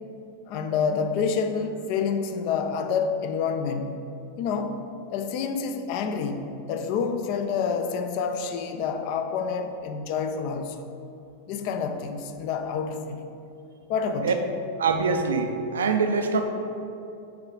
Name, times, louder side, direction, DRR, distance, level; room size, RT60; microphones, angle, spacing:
voice 1, 0.5-4.0 4.4-4.8 5.1-10.9 11.5-13.3 13.9-14.4, left 6 dB, 45° left, 6 dB, 0.5 m, -28 dB
voice 2, 14.8-16.4, right 5 dB, 65° right, 6 dB, 0.5 m, -24 dB
5.8 x 3.8 x 4.9 m, 2.8 s
figure-of-eight pair, 90°, 0 cm